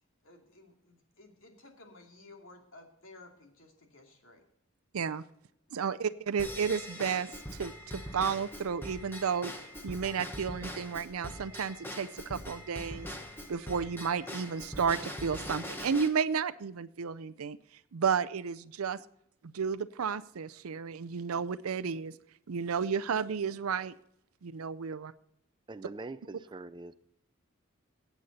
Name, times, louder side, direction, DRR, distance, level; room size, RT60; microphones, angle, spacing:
voice 1, 0.2-4.4 5.7-6.1, left 2 dB, 65° left, 2.6 m, -55 dB
voice 2, 5.7-7.3 7.6-9.5 9.8-13.1 13.5-17.6 17.9-19.0 19.4-22.2 22.5-23.9 24.4-25.1, right 6 dB, 85° right, 0.5 m, -32 dB
Drum kit / Drum / Bell, 6.4-16.1, left 1 dB, 10° left, 1.2 m, -42 dB
voice 3, 25.7-26.9, right 2 dB, 20° right, 0.4 m, -43 dB
17.5 x 8.2 x 4.2 m
head